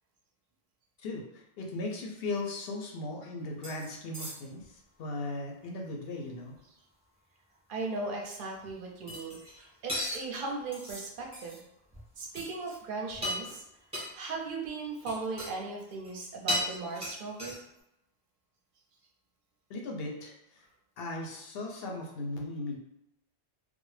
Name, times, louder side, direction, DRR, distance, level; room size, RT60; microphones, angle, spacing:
voice 1, 1.0-6.5 19.7-20.6 21.0-22.8, left 2 dB, 70° left, 0 dB, 0.7 m, -37 dB
sound 1, 3.6-4.7 9.1-9.6 9.9-11.1 11.3-11.6 11.9-12.1 12.4-12.7 13.1-13.6 13.9-14.1 15.0-15.5 15.8-16.2 16.5-17.8, left 1 dB, 5° right, 0.9 m, -36 dB
voice 2, 7.7-11.6 12.2-13.6 14.1-17.6, right 3 dB, 60° right, 0 dB, 0.6 m, -37 dB
2.2 x 2.0 x 3.1 m, 0.83 s
omnidirectional pair, 1.1 m